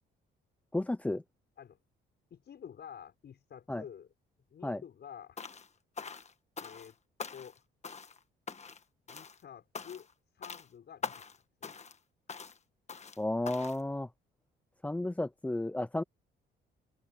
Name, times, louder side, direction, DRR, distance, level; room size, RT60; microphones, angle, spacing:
voice 1, 0.7-1.2 3.7-3.8 4.6-4.8 13.2-14.1 14.8-16.0, left 1 dB, 5° left, 0.5 m, -33 dB
voice 2, 2.3-4.1 4.5-5.4 6.6-7.0 7.3-7.6 9.1-10.1 10.3-11.3 11.6-11.8, left 8 dB, 60° left, 6.4 m, -49 dB
sound 1, 5.4-5.7 6.0-6.9 7.2-7.6 7.8-8.2 8.5-8.8 9.1-9.4 9.7-10.1 10.4-10.7 11.0-11.4 11.6-12.0 12.3-12.6 12.9-13.2 13.5-13.8, left 5 dB, 35° left, 1.5 m, -43 dB
cardioid pair, 90°, 20 cm